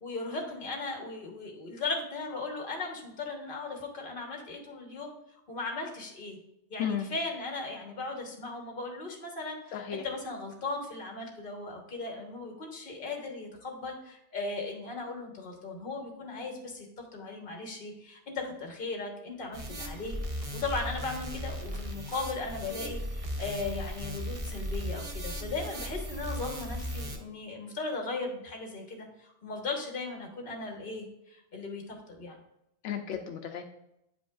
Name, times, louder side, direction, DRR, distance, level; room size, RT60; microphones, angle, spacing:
voice 1, 0.0-5.1 5.5-6.4 6.7-32.4, left 3 dB, 50° left, 2 dB, 1.4 m, -37 dB
voice 2, 9.7-10.0 32.8-33.6, left 8 dB, 85° left, 4 dB, 0.9 m, -33 dB
sound 1, 19.5-27.2, equal, 35° right, 0.7 m, -37 dB
9.1 x 5.1 x 2.4 m, 0.82 s
omnidirectional pair, 1.2 m